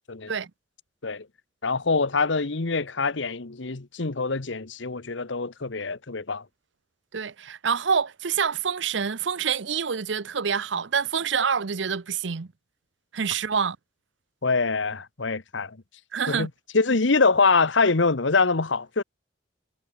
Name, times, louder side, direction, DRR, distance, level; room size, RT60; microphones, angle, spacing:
voice 1, 1.6-6.4 14.4-15.8 16.3-16.5 16.7-19.0, left 4 dB, 70° left, 1.1 m, -24 dB
voice 2, 7.1-12.5 13.1-13.8 16.1-16.5, right 6 dB, 65° right, 0.7 m, -26 dB
head